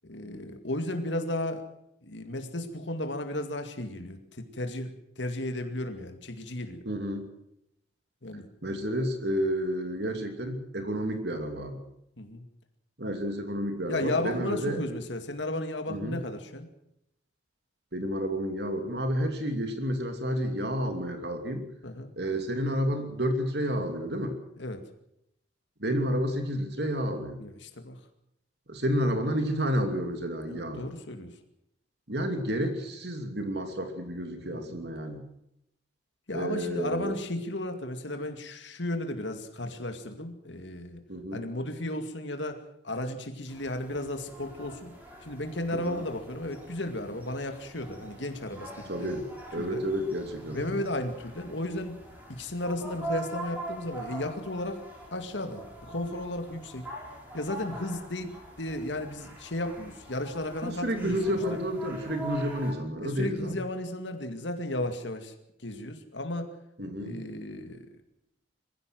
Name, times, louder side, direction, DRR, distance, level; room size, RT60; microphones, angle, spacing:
voice 1, 0.0-1.6 2.0-6.8 8.2-8.5 12.2-12.4 13.9-16.7 21.8-22.1 24.6-24.8 27.4-28.0 30.5-31.3 34.5-34.8 36.3-41.0 41.3-45.0 45.2-49.2 49.6-49.8 50.5-52.0 52.3-54.8 55.1-56.9 57.3-61.4 63.0-65.3 65.6-66.5 67.0-67.8, left 1 dB, 75° left, 6 dB, 2.3 m, -34 dB
voice 2, 6.9-7.3 8.6-11.8 13.0-14.8 15.9-16.2 17.9-21.6 22.2-24.3 25.8-27.4 28.7-30.9 32.1-35.2 36.3-37.1 41.1-41.5 45.7-46.0 48.9-49.3 49.5-50.8 60.6-63.6 66.8-67.2, equal, 60° right, 6 dB, 2.8 m, -30 dB
sound 1, 43.5-62.7, right 1 dB, 10° right, 6.2 m, -43 dB
22.0 x 15.5 x 7.8 m, 0.80 s
head